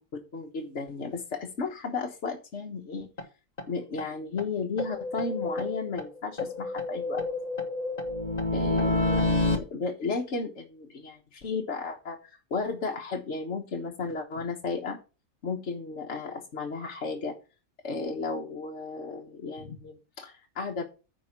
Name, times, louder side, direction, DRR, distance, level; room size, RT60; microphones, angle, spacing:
voice 1, 0.3-3.1 3.7-7.2 8.5-15.0 15.4-17.3 17.8-20.8, left 4 dB, 60° left, 1 dB, 1.5 m, -34 dB
sound 1, 3.2-3.3 3.6-3.7 4.0-4.1 4.4-4.5 4.8-6.1 6.4-9.6, left 2 dB, 30° left, 1.5 m, -28 dB
9.5 x 4.8 x 5.9 m, 0.32 s
omnidirectional pair, 1.4 m